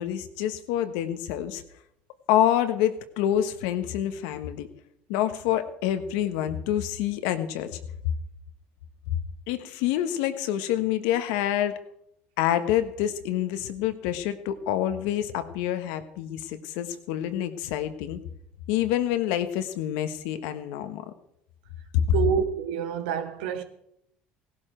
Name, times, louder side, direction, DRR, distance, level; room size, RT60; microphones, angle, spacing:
voice 1, 0.0-1.6 2.3-4.7 5.1-7.8 9.5-11.8 12.4-18.2 18.7-21.1 21.9-22.1, left 11 dB, 75° left, 1.3 m, -27 dB
voice 2, 22.1-23.6, right 8 dB, 80° right, 1.6 m, -27 dB
17.0 x 11.5 x 4.5 m
hypercardioid pair, 80°, 5 cm